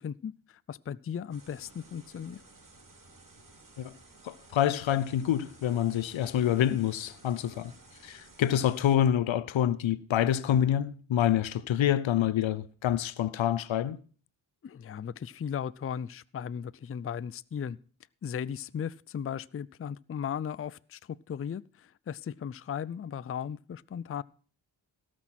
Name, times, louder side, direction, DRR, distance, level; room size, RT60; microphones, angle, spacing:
voice 1, 0.0-2.4 14.6-17.8 18.2-24.2, left 8 dB, 30° left, 0.5 m, -37 dB
sound 1, 1.3-9.0, right 2 dB, 45° right, 2.8 m, -55 dB
voice 2, 4.2-7.7 8.0-14.0, left 10 dB, 75° left, 0.7 m, -27 dB
17.5 x 6.4 x 5.9 m
supercardioid pair, 40°, 47 cm